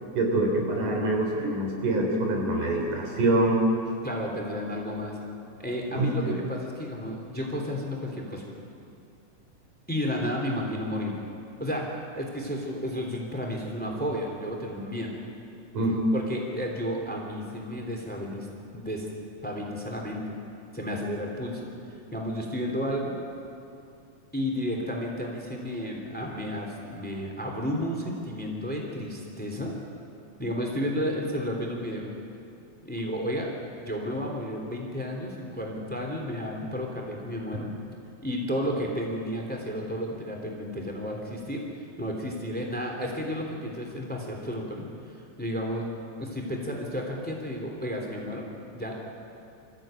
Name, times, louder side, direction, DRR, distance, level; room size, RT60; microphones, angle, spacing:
voice 1, 0.2-3.6 6.0-6.3 15.7-16.0, right 2 dB, 85° right, 1 dB, 5.1 m, -25 dB
voice 2, 4.0-5.2 5.6-8.4 9.9-11.2 11.6-11.9 12.1-15.1 16.1-18.5 18.7-19.1 19.4-20.4 20.7-23.2 24.3-29.7 30.4-32.1 32.8-33.5 33.8-37.7 38.2-44.8 45.4-45.9 46.2-48.5 48.7-48.9, equal, 5° left, 1 dB, 2.8 m, -32 dB
26.0 x 14.5 x 9.0 m, 2.5 s
omnidirectional pair, 3.6 m